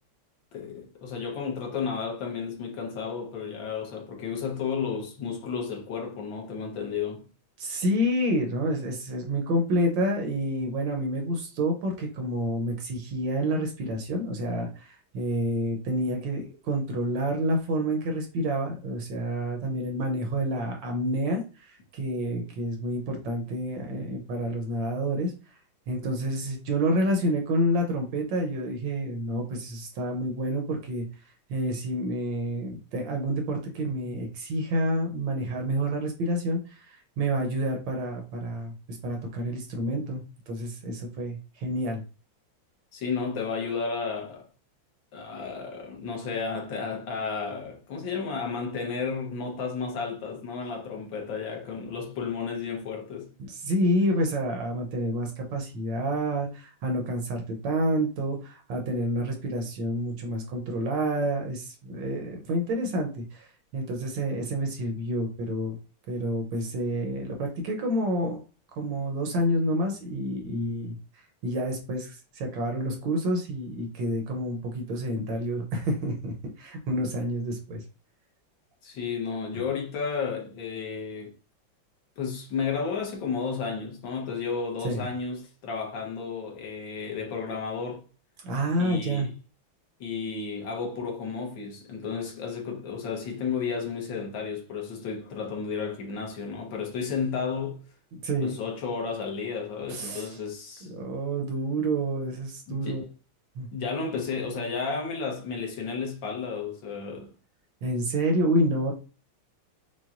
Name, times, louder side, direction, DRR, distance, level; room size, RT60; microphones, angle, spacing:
voice 1, 0.5-7.2 42.9-44.4 45.1-53.3 78.8-81.3 82.2-88.0 88.8-89.3 90.0-97.8 98.4-100.9 102.7-103.0 103.7-107.3, left 5 dB, 65° left, 1.5 m, -32 dB
voice 2, 7.6-25.3 25.9-31.1 31.5-42.0 53.4-63.5 63.7-65.8 66.1-68.4 68.8-71.0 71.4-77.8 84.8-85.0 88.4-89.3 98.1-98.6 99.9-100.4 100.9-103.0 103.6-103.7 107.8-108.9, right 1 dB, 70° right, 1.3 m, -28 dB
5.7 x 2.2 x 2.4 m
omnidirectional pair, 2.3 m